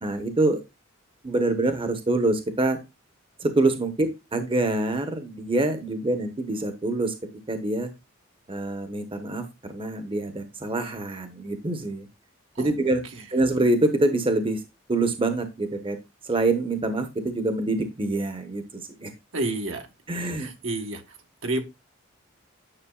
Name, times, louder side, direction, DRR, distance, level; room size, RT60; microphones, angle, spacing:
voice 1, 0.0-0.6 1.2-2.8 3.4-7.1 7.5-7.9 8.5-12.1 12.6-13.0 13.3-14.6 14.9-16.0 16.3-19.1 20.1-20.5, right 2 dB, 25° right, 8 dB, 1.0 m, -25 dB
voice 2, 19.3-19.9 20.1-21.2 21.4-21.6, right 2 dB, 70° right, 4 dB, 1.4 m, -30 dB
9.9 x 6.3 x 2.3 m, 0.23 s
head